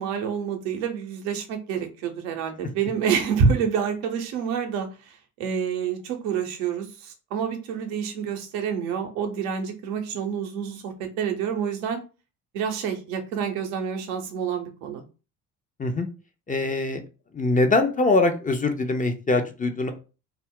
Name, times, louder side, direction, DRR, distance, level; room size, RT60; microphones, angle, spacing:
voice 1, 0.0-4.9 5.4-12.0 12.5-15.0, right 7 dB, 80° right, 5 dB, 0.7 m, -27 dB
voice 2, 16.5-17.0 17.3-19.9, left 2 dB, 20° left, 5 dB, 0.5 m, -23 dB
2.4 x 2.0 x 3.6 m, 0.33 s
hypercardioid pair, 55°, 41 cm